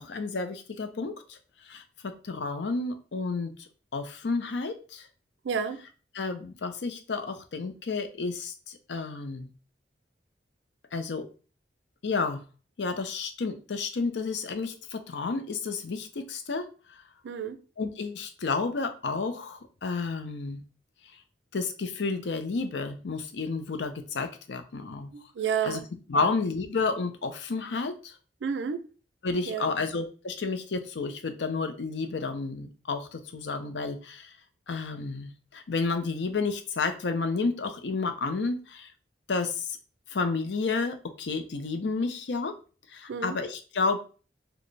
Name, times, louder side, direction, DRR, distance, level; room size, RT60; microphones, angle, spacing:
voice 1, 0.0-1.4 1.6-5.1 6.1-9.5 10.9-11.3 12.0-12.4 12.8-16.7 17.8-20.6 21.5-25.1 25.6-25.8 26.1-28.1 29.2-34.3 34.7-38.9 39.3-39.8 40.1-42.5 42.9-44.0, left 4 dB, 85° left, 0.6 m, -31 dB
voice 2, 5.4-5.8 17.2-17.6 25.1-25.8 26.1-26.3 28.4-28.8 29.5-29.7 43.1-43.4, right 6 dB, 90° right, 0.4 m, -31 dB
4.0 x 2.1 x 3.3 m
head